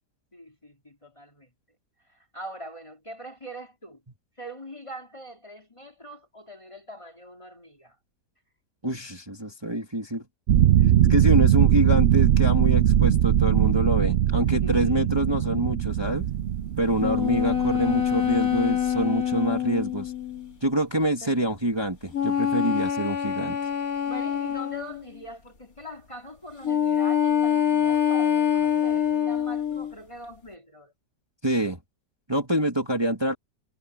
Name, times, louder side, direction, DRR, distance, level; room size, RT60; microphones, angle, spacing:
voice 1, 0.3-1.5 2.3-4.0 4.4-7.9 14.6-15.1 21.2-21.4 24.0-30.9, equal, 15° left, 2.6 m, -42 dB
voice 2, 8.8-10.2 11.1-16.3 16.8-20.1 20.6-23.6 31.4-31.8 32.3-33.3, right 1 dB, 15° right, 2.2 m, -26 dB
sound 1, 10.5-18.9, right 11 dB, 80° right, 0.5 m, -21 dB
sound 2, 17.0-20.5 22.1-25.0 26.6-29.9, left 9 dB, 55° left, 2.7 m, -25 dB
omnidirectional pair, 1.8 m